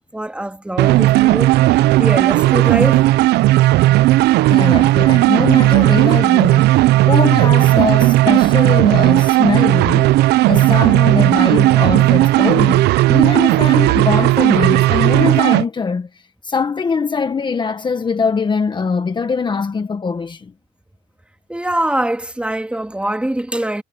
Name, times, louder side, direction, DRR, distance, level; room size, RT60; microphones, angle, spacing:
voice 1, 0.1-3.0 21.5-23.8, right 1 dB, 5° right, 3.1 m, -23 dB
sound 1, 0.8-15.6, right 17 dB, 75° right, 0.5 m, -13 dB
voice 2, 4.5-6.7 7.0-16.1 16.4-20.5, left 5 dB, 25° left, 1.3 m, -21 dB
cardioid pair, 110°, 17 cm